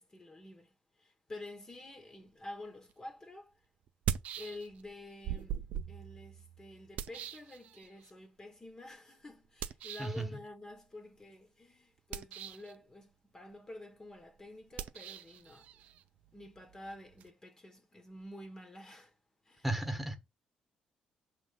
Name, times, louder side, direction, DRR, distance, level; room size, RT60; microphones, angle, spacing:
voice 1, 0.0-3.5 4.4-15.7 16.3-19.1 19.4-19.7, left 1 dB, 25° left, 1.2 m, -49 dB
sound 1, 2.9-3.0 3.9-4.9 5.2-8.1 9.6-10.2 12.0-12.8 14.7-17.3, right 10 dB, 80° right, 0.5 m, -41 dB
voice 2, 19.6-20.2, right 1 dB, 10° right, 1.3 m, -34 dB
5.9 x 3.3 x 5.4 m
cardioid pair, 85°, 2 cm